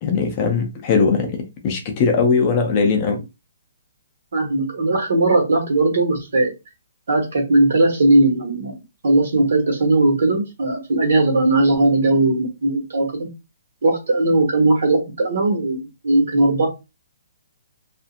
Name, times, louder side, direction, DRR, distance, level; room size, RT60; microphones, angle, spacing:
voice 1, 0.0-3.2, left 5 dB, 25° left, 0.5 m, -19 dB
voice 2, 4.3-6.5 7.1-8.8 9.0-13.3 13.8-15.8 16.0-16.7, right 2 dB, 65° right, 1.3 m, -18 dB
2.7 x 2.5 x 2.4 m
hypercardioid pair, 175°, 0 cm